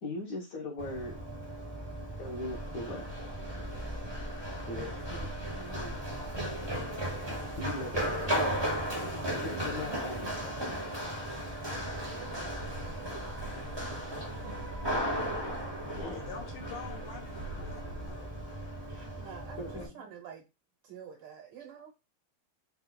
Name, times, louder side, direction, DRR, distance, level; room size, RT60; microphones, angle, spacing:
voice 1, 0.0-1.2 2.2-3.0 4.7-6.0 7.6-8.4 9.4-10.6 13.4-14.0 14.9-15.5 15.9-16.2 19.6-20.0, left 2 dB, 55° left, 1.1 m, -40 dB
Run, 0.8-19.9, equal, 25° right, 0.5 m, -36 dB
voice 2, 4.4-4.9 12.1-12.5 18.9-19.6 20.0-20.4 20.9-21.9, right 7 dB, 80° right, 1.8 m, -48 dB
sound 1, 11.7-18.1, right 2 dB, 65° right, 1.1 m, -45 dB
voice 3, 16.1-18.3, left 5 dB, 75° left, 1.9 m, -46 dB
4.4 x 2.3 x 3.8 m
omnidirectional pair, 2.4 m